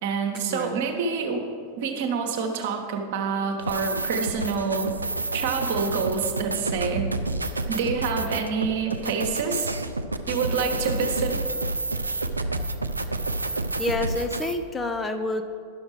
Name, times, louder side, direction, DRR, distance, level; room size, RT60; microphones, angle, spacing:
voice 1, 0.0-1.4 1.8-4.9 5.3-7.1 7.7-9.7 10.3-11.5, right 5 dB, 55° right, 4 dB, 1.1 m, -27 dB
sound 1, 3.6-14.6, right 2 dB, 80° right, 0.4 m, -29 dB
voice 2, 13.8-15.4, left 2 dB, 15° left, 7 dB, 0.5 m, -28 dB
11.0 x 6.4 x 4.8 m, 2.4 s
figure-of-eight pair, 90°, 0 cm